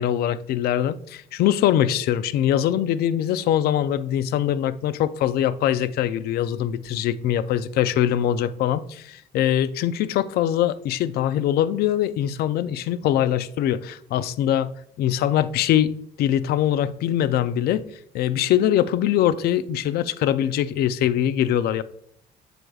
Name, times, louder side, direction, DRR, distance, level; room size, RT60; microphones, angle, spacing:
voice 1, 0.0-14.7 15.0-15.9 16.2-17.9 18.1-21.8, left 11 dB, 70° left, 0.4 m, -22 dB
7.7 x 6.2 x 2.3 m
cardioid pair, 110°, 17 cm